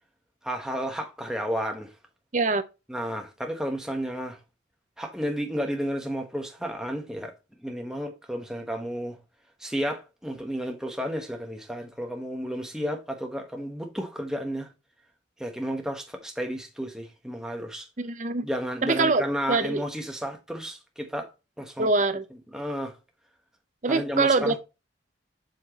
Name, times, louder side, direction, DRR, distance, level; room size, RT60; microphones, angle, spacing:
voice 1, 0.4-1.9 2.9-4.4 5.0-7.3 7.6-9.2 9.6-14.7 15.4-17.9 18.4-21.3 21.6-21.9 22.5-22.9 23.9-24.5, equal, 5° right, 1.1 m, -32 dB
voice 2, 18.0-18.5 18.8-19.8 21.8-22.2 23.8-24.6, right 3 dB, 40° right, 0.6 m, -24 dB
7.9 x 4.5 x 2.9 m
head